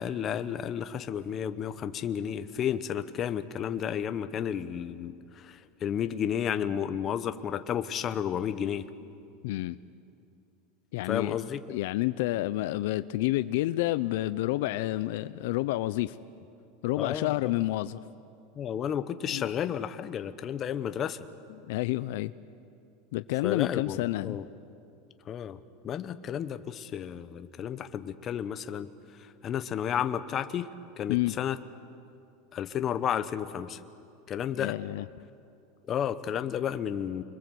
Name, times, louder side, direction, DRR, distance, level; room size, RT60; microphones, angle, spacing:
voice 1, 0.0-8.9 11.0-11.6 17.0-17.3 18.6-21.2 23.4-24.4 25.3-25.6 25.8-28.9 29.4-30.7 31.0-31.6 32.5-33.8 34.3-34.7 35.9-37.2, left 9 dB, 25° left, 10 dB, 0.9 m, -32 dB
voice 2, 9.4-9.8 10.9-11.4 11.7-16.1 16.8-18.0 19.3-19.5 21.7-22.3 23.1-24.4 31.1-31.3 34.6-35.1, left 17 dB, 65° left, 14 dB, 0.6 m, -29 dB
29.5 x 22.5 x 7.9 m, 2.5 s
supercardioid pair, 160°, 0 cm